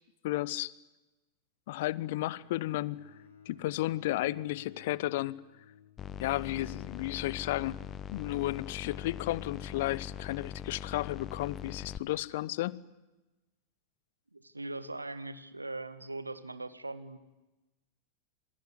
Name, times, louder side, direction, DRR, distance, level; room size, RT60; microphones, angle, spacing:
voice 1, 0.2-0.7 1.7-3.1 3.5-5.4 6.2-7.8 8.1-12.8, left 16 dB, 50° left, 22 dB, 0.9 m, -33 dB
Bowed string instrument, 2.3-6.5, left 5 dB, 75° left, 7.8 m, -57 dB
sound 1, 6.0-12.0, left 9 dB, 30° left, 1.0 m, -42 dB
voice 2, 14.3-17.2, right 2 dB, 85° right, 13 dB, 1.8 m, -40 dB
27.0 x 22.0 x 9.8 m, 1.1 s
figure-of-eight pair, 90°, 0 cm